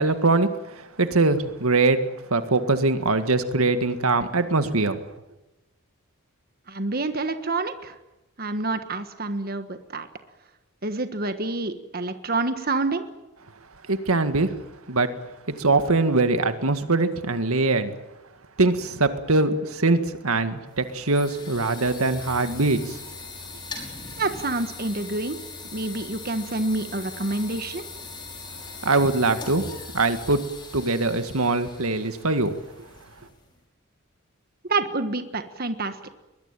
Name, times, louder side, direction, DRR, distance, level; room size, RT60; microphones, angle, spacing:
voice 1, 0.0-2.0 2.3-5.0 13.9-14.5 14.9-15.1 15.5-17.9 18.6-23.0 28.8-29.7 29.9-30.4 30.7-32.9, right 3 dB, 85° right, 9 dB, 1.9 m, -22 dB
voice 2, 6.7-8.0 8.4-10.1 10.8-13.0 24.2-25.4 25.7-27.8 34.7-36.0, right 2 dB, 45° right, 8 dB, 1.5 m, -27 dB
sound 1, 20.7-33.5, left 3 dB, 20° left, 5.6 m, -40 dB
22.5 x 21.0 x 9.0 m, 0.98 s
head